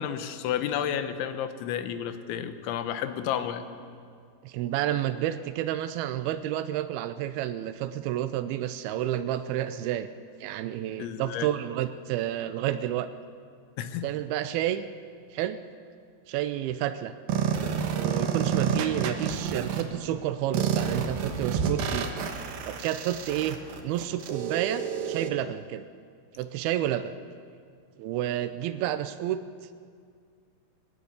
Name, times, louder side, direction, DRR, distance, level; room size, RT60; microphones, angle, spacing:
voice 1, 0.0-3.6 11.0-11.5 13.8-14.1, left 9 dB, 85° left, 10 dB, 3.4 m, -31 dB
voice 2, 4.4-10.1 10.4-13.1 14.0-14.9 15.3-15.6 16.3-17.1 18.0-22.1 22.7-23.6 23.8-25.9 26.4-27.1 28.0-29.4, right 12 dB, 85° right, 11 dB, 2.1 m, -30 dB
sound 1, 17.3-19.8 20.5-25.3, right 7 dB, 65° right, 2.7 m, -29 dB
20.0 x 19.0 x 8.2 m, 2.2 s
omnidirectional pair, 5.2 m